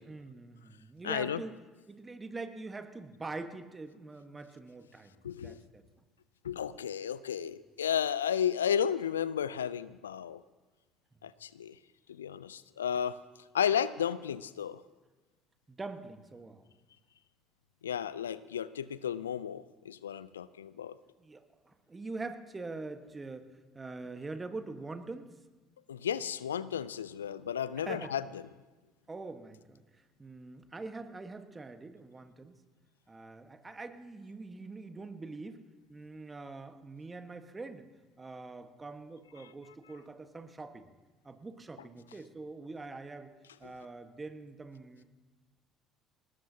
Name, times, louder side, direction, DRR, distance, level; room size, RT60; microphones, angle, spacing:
voice 1, 0.1-1.6 1.9-5.8 11.1-11.2 15.7-16.7 21.2-25.3 27.8-28.1 29.1-32.6 33.1-35.6 35.9-37.9 38.2-40.9 41.2-43.3 43.6-45.0, right 3 dB, 20° right, 8 dB, 1.3 m, -44 dB
voice 2, 1.0-1.4 5.2-5.6 6.4-10.4 11.2-11.7 12.1-13.2 13.5-14.8 17.8-21.0 25.9-28.2, left 8 dB, 85° left, 17 dB, 0.4 m, -33 dB
21.5 x 19.5 x 2.8 m, 1.2 s
hypercardioid pair, 60°, 0 cm